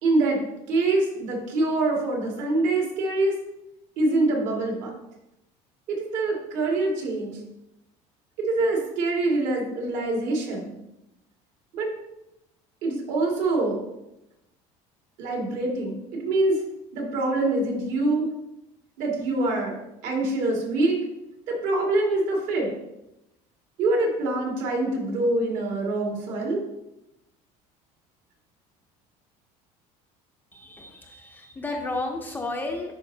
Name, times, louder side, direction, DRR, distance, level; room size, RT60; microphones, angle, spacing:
voice 1, 0.0-3.4 4.0-5.0 5.9-7.4 8.4-10.7 11.7-11.9 12.8-13.9 15.2-16.6 16.9-18.3 19.0-19.8 20.0-21.0 21.5-22.7 23.8-26.6, right 2 dB, 65° right, -1 dB, 2.0 m, -25 dB
voice 2, 30.5-32.9, left 2 dB, 15° left, 2 dB, 0.5 m, -32 dB
10.5 x 4.6 x 2.7 m, 0.91 s
cardioid pair, 170°, 15 cm